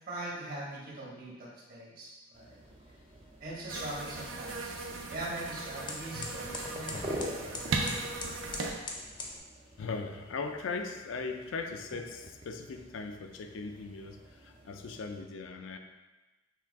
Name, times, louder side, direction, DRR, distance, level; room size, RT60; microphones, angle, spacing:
voice 1, 0.0-2.6 3.4-7.2, right 1 dB, 50° right, -5 dB, 1.2 m, -41 dB
sound 1, 2.3-15.2, equal, 30° right, 0.4 m, -47 dB
sound 2, 2.6-9.4, left 2 dB, 25° left, 0.5 m, -45 dB
sound 3, 3.7-8.7, right 3 dB, 80° right, 0.6 m, -37 dB
voice 2, 9.8-15.8, left 4 dB, 75° left, 5 dB, 0.4 m, -39 dB
5.7 x 2.3 x 3.5 m, 1.1 s
head